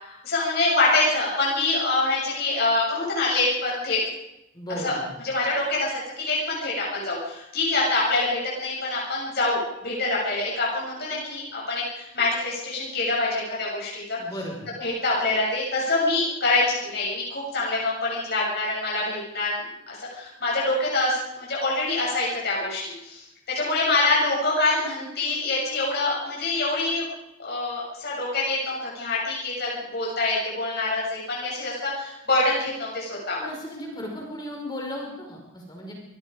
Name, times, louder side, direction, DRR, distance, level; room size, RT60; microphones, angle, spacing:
voice 1, 0.0-4.0 4.8-5.0 5.2-14.2 14.8-23.2 23.5-27.1 27.4-33.5, left 2 dB, 50° left, -5 dB, 7.5 m, -25 dB
voice 2, 4.5-5.1 14.2-14.7 33.4-35.9, equal, 20° left, 0 dB, 5.0 m, -35 dB
26.0 x 20.0 x 5.0 m, 0.89 s
head